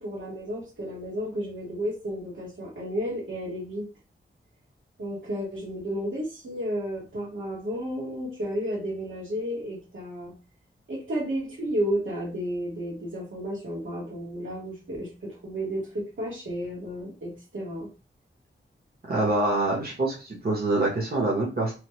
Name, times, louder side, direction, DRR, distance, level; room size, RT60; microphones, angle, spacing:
voice 1, 0.0-3.9 5.0-10.3 10.9-17.9, equal, 75° right, -3 dB, 1.5 m, -32 dB
voice 2, 19.1-21.7, right 2 dB, 50° right, -4 dB, 1.1 m, -25 dB
3.2 x 2.2 x 3.1 m, 0.33 s
wide cardioid pair, 85°, 20 cm